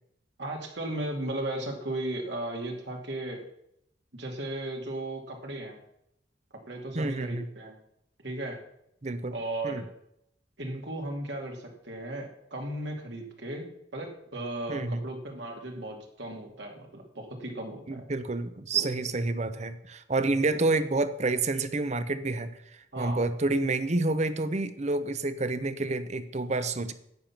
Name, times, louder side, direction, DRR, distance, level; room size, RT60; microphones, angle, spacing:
voice 1, 0.4-3.4 4.1-5.8 6.7-7.8 8.2-8.6 9.3-9.8 10.6-18.0 18.7-18.9 22.9-23.2, right 1 dB, 65° right, 2 dB, 2.4 m, -36 dB
voice 2, 6.9-7.5 9.0-9.3 9.6-9.8 14.7-15.0 17.9-22.5 23.0-26.9, right 2 dB, 35° right, 12 dB, 0.8 m, -28 dB
11.0 x 8.8 x 5.9 m, 0.76 s
head